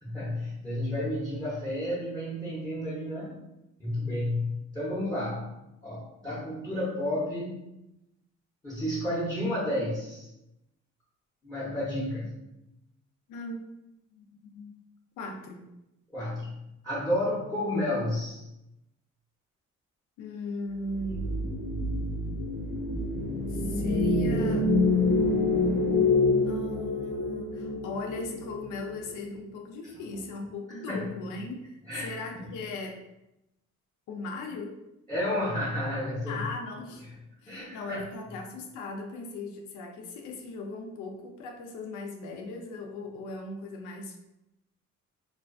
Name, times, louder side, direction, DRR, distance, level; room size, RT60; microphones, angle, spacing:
voice 1, 0.0-3.4 3.8-5.5 5.8-7.6 8.6-10.3 11.4-12.4 16.1-18.5 29.8-29.9 30.9-31.1 31.9-32.5 35.1-36.5 37.5-38.0, left 1 dB, 10° left, -8 dB, 0.7 m, -31 dB
voice 2, 13.3-13.6 14.1-14.8 15.2-15.6 20.2-21.3 23.5-24.7 26.4-33.0 34.1-34.8 36.3-37.1 37.4-44.2, left 2 dB, 85° left, 3 dB, 0.5 m, -38 dB
sound 1, 20.9-29.2, left 2 dB, 40° left, 0.9 m, -27 dB
2.4 x 2.3 x 2.3 m, 0.90 s
cardioid pair, 90°, 30 cm